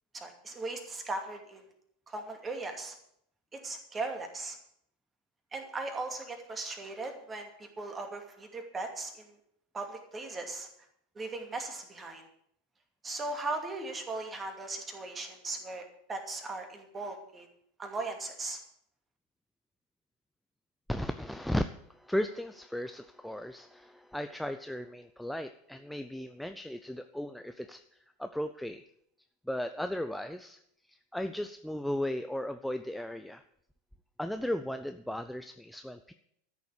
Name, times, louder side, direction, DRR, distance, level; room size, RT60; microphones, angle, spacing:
voice 1, 0.1-1.7 2.1-3.0 3.5-4.6 5.5-9.4 9.7-10.7 11.2-12.3 13.0-17.5 17.8-18.6, right 3 dB, 20° right, 4 dB, 2.5 m, -38 dB
voice 2, 20.9-21.6 21.9-27.8 28.2-28.8 29.5-30.6 30.9-33.4 34.2-36.1, left 1 dB, ahead, 8 dB, 0.6 m, -36 dB
13.5 x 7.0 x 8.4 m, 0.72 s
figure-of-eight pair, 85°, 0 cm